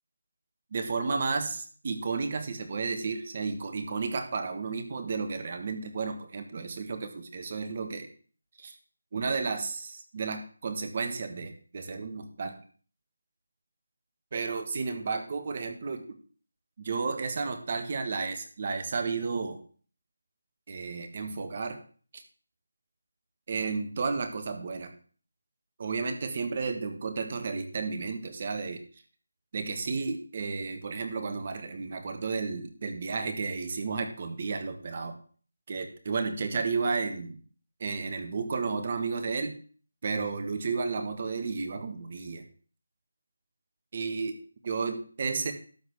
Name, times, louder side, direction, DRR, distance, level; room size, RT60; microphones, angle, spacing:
voice 1, 0.7-8.1 8.6-8.8 9.1-12.6 14.3-16.1 16.8-19.6 20.7-21.8 22.1-22.2 23.5-24.9 25.8-28.8 29.5-35.2 35.7-37.4 37.8-39.6 40.0-42.4 43.9-45.5, right 4 dB, 35° right, 7 dB, 1.6 m, -32 dB
12.5 x 4.2 x 8.3 m, 0.43 s
figure-of-eight pair, 170°, 0 cm